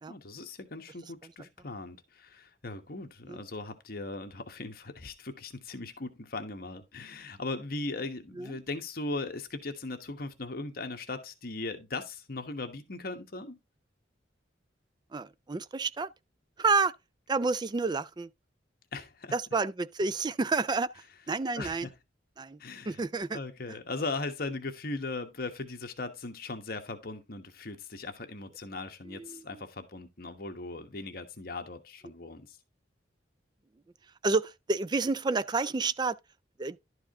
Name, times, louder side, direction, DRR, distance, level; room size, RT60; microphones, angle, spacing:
voice 1, 0.1-13.6 18.9-19.3 21.6-22.0 22.6-23.0 23.3-32.6, left 3 dB, 55° left, 1.3 m, -38 dB
voice 2, 15.1-16.1 16.6-16.9 17.3-18.3 19.3-21.9 22.4-22.6 22.9-23.4 29.1-29.6 34.2-36.2 36.6-36.8, right 4 dB, 25° right, 0.4 m, -30 dB
11.5 x 4.8 x 3.6 m
head